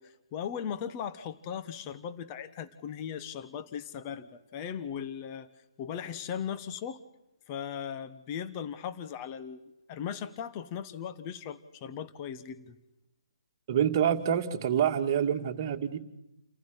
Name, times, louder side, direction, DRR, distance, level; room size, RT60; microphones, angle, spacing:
voice 1, 0.0-5.5 5.8-7.0 7.5-12.8, left 8 dB, 25° left, 11 dB, 1.3 m, -38 dB
voice 2, 13.7-16.0, right 9 dB, 30° right, 3 dB, 2.3 m, -27 dB
30.0 x 15.5 x 10.0 m, 0.91 s
figure-of-eight pair, 145°, 3 cm